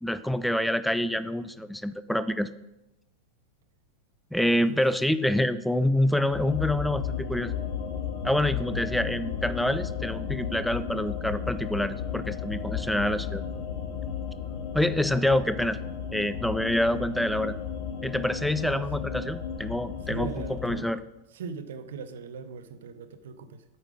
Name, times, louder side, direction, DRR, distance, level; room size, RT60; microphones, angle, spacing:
voice 1, 0.0-2.5 4.3-7.5 8.2-13.4 14.7-15.8 16.1-17.6 18.0-21.0, left 1 dB, ahead, 13 dB, 0.4 m, -27 dB
sound 1, 6.3-20.8, left 7 dB, 50° left, 0.9 m, -34 dB
voice 2, 18.6-19.1 20.0-20.9 21.3-23.6, right 6 dB, 60° right, 11 dB, 0.7 m, -40 dB
7.9 x 5.6 x 5.0 m, 0.92 s
figure-of-eight pair, 90°, 0 cm